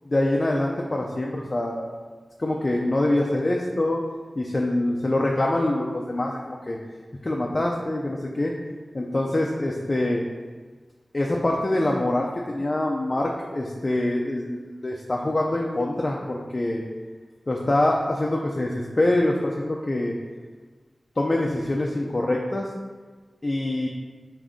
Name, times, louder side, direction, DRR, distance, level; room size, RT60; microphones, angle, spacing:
voice 1, 0.1-1.9 2.4-4.0 4.4-6.8 7.2-8.5 8.9-10.2 11.1-16.8 17.5-20.1 21.2-22.7 23.4-23.9, left 1 dB, 50° left, -1 dB, 0.4 m, -25 dB
3.5 x 2.6 x 3.7 m, 1.4 s
cardioid pair, 45°, 0 cm